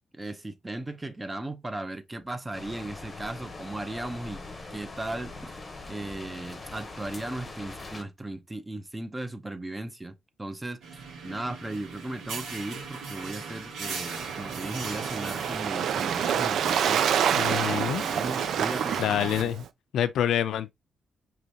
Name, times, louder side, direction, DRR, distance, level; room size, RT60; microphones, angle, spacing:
voice 1, 0.1-4.4 4.7-5.6 5.9-17.0 17.7-19.5, right 2 dB, 15° right, 0.5 m, -37 dB
sound 1, 2.5-8.0, left 3 dB, 20° left, 0.8 m, -42 dB
sound 2, 10.8-19.4, right 4 dB, 90° right, 1.5 m, -37 dB
Waves surf, 14.0-19.7, right 9 dB, 70° right, 0.4 m, -28 dB
voice 2, 17.4-18.0 19.0-19.6 19.9-20.7, left 10 dB, 80° left, 0.4 m, -27 dB
4.9 x 3.0 x 2.8 m
wide cardioid pair, 160°, 0 cm